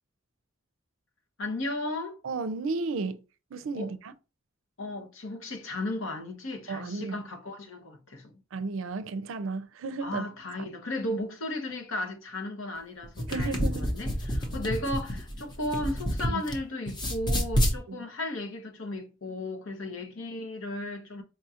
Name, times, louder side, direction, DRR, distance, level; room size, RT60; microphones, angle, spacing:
voice 1, 1.4-2.2 3.7-3.9 4.8-8.3 10.0-21.2, left 1 dB, 75° left, 0.9 m, -35 dB
voice 2, 2.2-3.2 3.5-4.1 6.7-7.2 8.5-10.2 13.3-13.8 16.3-16.4 17.9-18.0, right 3 dB, 75° right, 0.4 m, -33 dB
sound 1, 13.0-16.6 16.9-17.8, equal, 20° left, 0.7 m, -28 dB
4.6 x 2.4 x 2.8 m
head